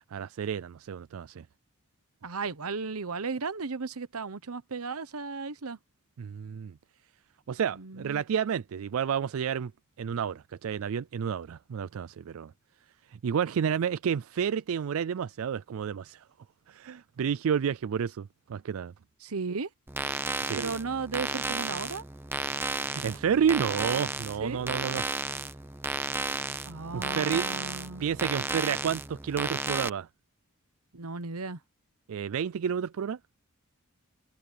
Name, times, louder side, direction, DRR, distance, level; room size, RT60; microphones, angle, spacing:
voice 1, 0.1-1.4 6.2-6.7 7.5-9.7 10.0-12.5 13.1-16.2 16.7-18.9 20.5-20.7 22.9-25.0 26.9-27.5 28.0-30.1 32.1-33.2, right 7 dB, 70° right, 0.4 m, -30 dB
voice 2, 2.2-5.8 7.7-8.2 19.2-19.7 20.6-22.0 24.4-24.6 26.7-28.0 30.9-31.6, right 4 dB, 85° right, 1.0 m, -35 dB
sound 1, 19.9-29.9, right 2 dB, 10° right, 0.8 m, -33 dB
head